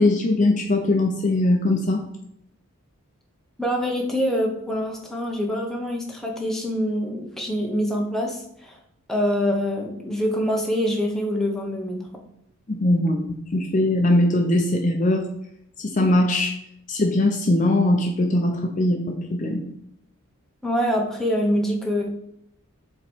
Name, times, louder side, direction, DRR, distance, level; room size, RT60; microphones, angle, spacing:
voice 1, 0.0-2.0 12.7-13.3 13.5-15.2 15.8-16.5 16.9-19.6, left 1 dB, 35° left, 3 dB, 0.6 m, -20 dB
voice 2, 3.6-8.8 9.1-12.1 20.6-22.1, equal, ahead, 0 dB, 0.9 m, -25 dB
7.5 x 3.0 x 4.4 m, 0.75 s
head